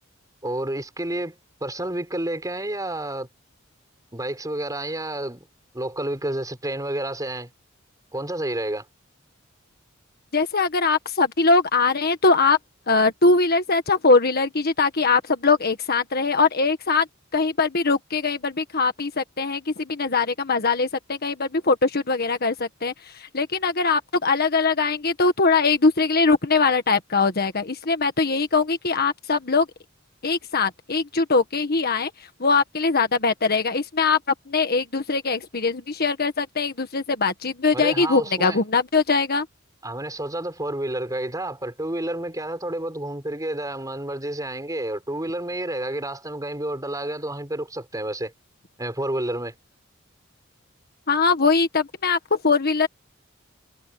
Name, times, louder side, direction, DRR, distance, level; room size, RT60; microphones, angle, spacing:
voice 1, 0.4-3.3 4.1-5.5 5.7-7.5 8.1-8.8 37.7-38.6 39.8-48.3 48.8-49.5, right 1 dB, 20° right, 5.9 m, -30 dB
voice 2, 10.3-12.6 12.9-17.1 17.3-29.7 30.2-32.1 32.4-34.2 34.5-39.5 51.1-52.9, left 4 dB, 50° left, 1.6 m, -21 dB
head